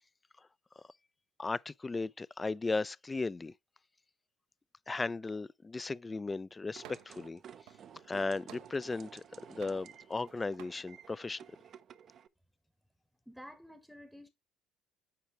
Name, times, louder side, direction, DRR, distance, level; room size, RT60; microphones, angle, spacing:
voice 1, 1.4-3.5 4.9-7.4 8.1-11.4, left 3 dB, 20° left, 0.3 m, -36 dB
sound 1, 6.8-12.3, right 8 dB, 50° right, 0.6 m, -54 dB
sound 2, 6.8-7.3 7.7-9.2 9.6-10.3 10.6-10.8, right 12 dB, 80° right, 0.8 m, -54 dB
voice 2, 13.3-14.3, equal, ahead, 0.9 m, -51 dB
8.5 x 4.8 x 3.0 m
supercardioid pair, 85°, 0 cm